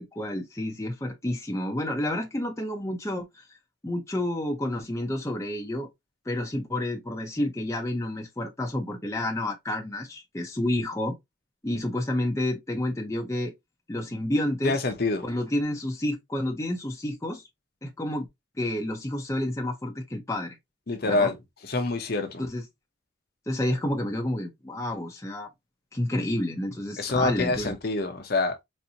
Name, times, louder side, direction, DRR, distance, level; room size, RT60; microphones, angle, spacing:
voice 1, 0.0-3.5 3.8-5.9 6.3-11.1 11.6-13.5 13.9-14.8 15.2-17.4 17.8-18.3 18.6-20.6 21.0-21.3 22.4-22.6 23.5-25.5 25.9-27.7, left 1 dB, 15° left, 0.6 m, -30 dB
voice 2, 14.6-15.2 20.9-21.3 21.6-22.4 27.0-28.5, left 3 dB, 50° left, 0.7 m, -26 dB
4.1 x 2.6 x 2.7 m
head